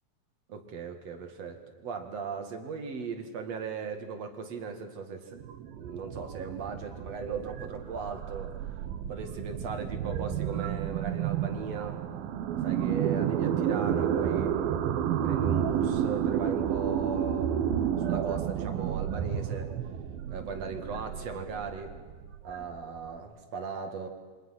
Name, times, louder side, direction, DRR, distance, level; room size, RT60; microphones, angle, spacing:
voice 1, 0.5-5.4 5.8-8.5 9.1-12.0 12.6-14.6 15.2-17.6 18.0-19.7 20.3-22.0 22.4-24.1, right 5 dB, 50° right, 6 dB, 2.8 m, -38 dB
sound 1, 5.3-23.1, right 9 dB, 75° right, 2.9 m, -31 dB
28.0 x 24.5 x 5.9 m, 1.5 s
omnidirectional pair, 4.4 m